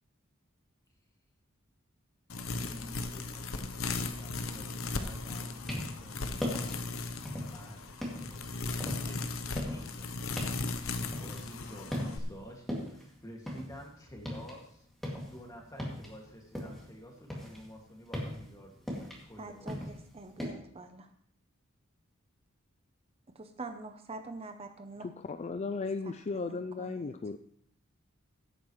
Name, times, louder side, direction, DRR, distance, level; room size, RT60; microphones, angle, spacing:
sound 1, 2.3-12.2, left 3 dB, 90° left, 0.9 m, -37 dB
voice 1, 2.6-6.7 7.5-8.6 9.0-10.2 10.9-14.9 15.2-20.0, equal, 15° left, 0 dB, 2.1 m, -50 dB
sound 2, 5.6-6.1 6.4-6.8 7.2-7.6 8.0-11.6 11.9-12.4 12.7-14.6 14.9-16.9 17.2-20.5, equal, ahead, 2.4 m, -38 dB
voice 2, 19.4-21.1 23.3-25.1 26.0-27.1, right 3 dB, 30° right, 7 dB, 0.7 m, -45 dB
voice 3, 25.0-27.4, left 4 dB, 35° left, 9 dB, 0.4 m, -36 dB
16.0 x 8.7 x 3.2 m, 0.68 s
head